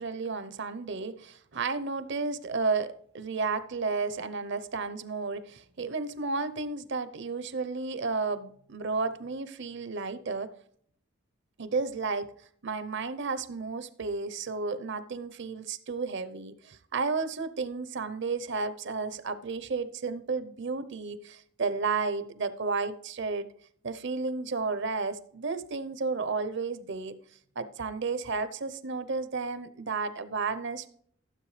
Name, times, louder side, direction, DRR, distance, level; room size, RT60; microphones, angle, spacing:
voice 1, 0.0-10.5 11.6-12.3 12.6-23.5 23.8-27.2 27.6-30.9, right 4 dB, 60° right, 0.8 m, -32 dB
12.5 x 7.7 x 3.3 m
head